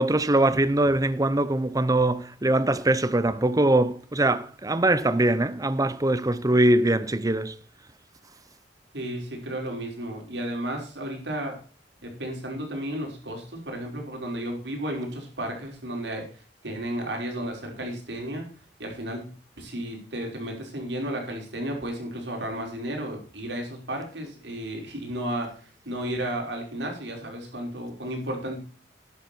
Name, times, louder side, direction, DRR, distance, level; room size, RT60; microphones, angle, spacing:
voice 1, 0.0-7.6, right 1 dB, 20° right, 0.8 m, -22 dB
voice 2, 8.9-11.6 12.0-16.3 16.6-18.5 18.8-25.6 25.9-28.6, right 1 dB, 80° right, 5.5 m, -33 dB
12.5 x 10.5 x 4.6 m
head